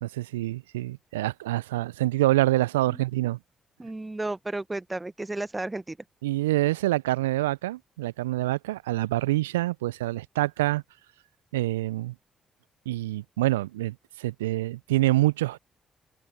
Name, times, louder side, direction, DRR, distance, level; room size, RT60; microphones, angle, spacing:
voice 1, 0.0-3.4 6.2-10.8 11.5-12.1 12.9-15.6, right 17 dB, 85° right, 0.4 m, -26 dB
voice 2, 3.8-6.0, right 2 dB, 20° right, 1.0 m, -33 dB
open air
figure-of-eight pair, 40°, 0 cm